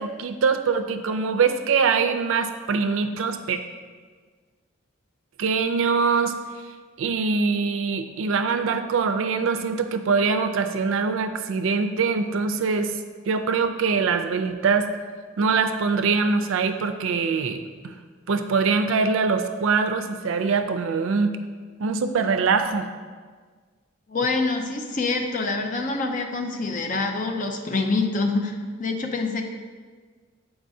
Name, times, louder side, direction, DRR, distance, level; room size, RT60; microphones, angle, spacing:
voice 1, 0.0-3.6 5.4-6.4 7.0-12.9 13.3-14.9 15.4-17.6 18.3-21.3 21.8-22.9, right 5 dB, 70° right, 8 dB, 0.4 m, -23 dB
voice 2, 24.1-29.4, left 3 dB, 40° left, 4 dB, 0.5 m, -26 dB
7.3 x 4.8 x 2.7 m, 1.5 s
head